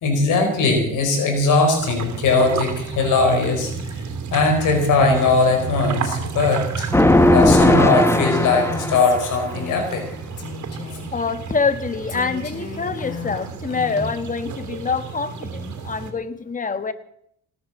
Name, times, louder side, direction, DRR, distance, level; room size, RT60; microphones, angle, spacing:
voice 1, 0.0-3.7 4.0-10.0, left 3 dB, 85° left, 4 dB, 4.8 m, -20 dB
sound 1, 1.8-16.1, right 5 dB, 70° right, 3.1 m, -31 dB
sound 2, 6.9-9.3, left 1 dB, 10° left, 1.4 m, -16 dB
Female speech woman speaking, 7.9-10.1 10.4-11.1 12.1-14.2, left 4 dB, 55° left, 4.5 m, -34 dB
voice 2, 11.1-16.9, left 5 dB, 25° left, 11 dB, 1.4 m, -25 dB
18.5 x 9.5 x 7.2 m, 0.71 s
cardioid pair, 90°, 30 cm